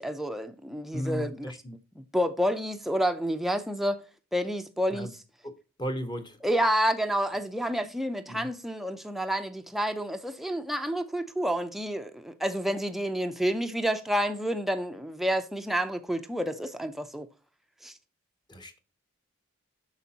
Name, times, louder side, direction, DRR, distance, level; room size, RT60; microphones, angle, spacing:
voice 1, 0.0-1.5 2.0-4.0 4.3-5.1 6.4-17.3 17.8-17.9, equal, ahead, 0.4 m, -29 dB
voice 2, 0.9-1.7 4.9-5.1 5.4-5.5 5.8-6.4 7.8-7.9 8.3-8.5 18.5-18.8, equal, 20° left, 0.8 m, -35 dB
8.2 x 6.1 x 2.8 m
head